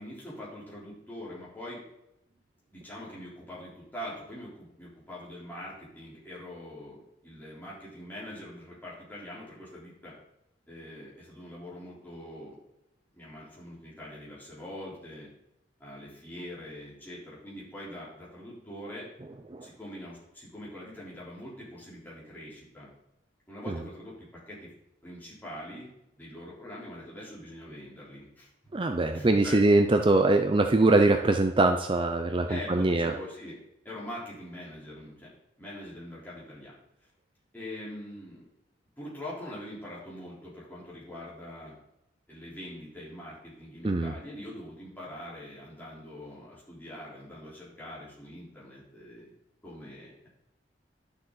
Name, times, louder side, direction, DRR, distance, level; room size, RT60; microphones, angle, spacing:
voice 1, 0.0-1.8 2.7-10.1 10.7-12.6 13.1-15.3 15.8-19.1 19.6-22.9 23.5-24.7 25.0-25.9 26.2-29.6 32.5-33.6 33.8-35.3 35.6-36.7 37.5-38.4 39.0-41.8 42.3-49.3 49.6-50.1, left 1 dB, 10° left, -7 dB, 3.7 m, -43 dB
voice 2, 28.7-33.1 43.8-44.1, right 2 dB, 25° right, 6 dB, 0.5 m, -23 dB
11.5 x 6.8 x 4.0 m, 0.84 s
head